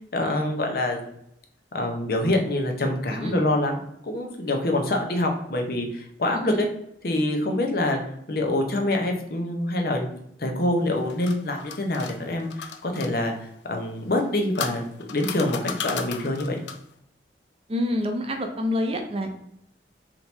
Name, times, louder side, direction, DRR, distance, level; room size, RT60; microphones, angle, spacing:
voice 1, 0.1-1.0 1.7-6.7 7.0-8.0 8.3-10.1 10.4-13.3 13.7-16.6, left 1 dB, 55° left, 3 dB, 0.8 m, -25 dB
sound 1, 10.8-13.1 14.1-16.9, left 7 dB, 80° left, 0.5 m, -35 dB
voice 2, 17.7-19.4, left 1 dB, 30° right, 4 dB, 0.6 m, -27 dB
3.8 x 2.9 x 4.0 m, 0.74 s
head